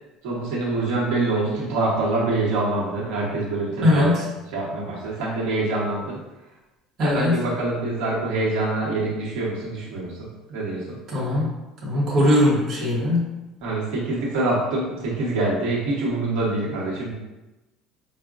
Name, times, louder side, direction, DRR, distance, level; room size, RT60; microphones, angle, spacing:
voice 1, 0.2-4.1 4.5-6.2 7.0-11.0 13.6-17.1, right 2 dB, 80° right, -5 dB, 1.0 m, -25 dB
voice 2, 3.8-4.3 7.0-7.4 11.1-11.5 11.8-13.3, left 1 dB, 35° right, -7 dB, 0.9 m, -20 dB
4.8 x 2.1 x 2.4 m, 1.0 s
cardioid pair, 165°, 0 cm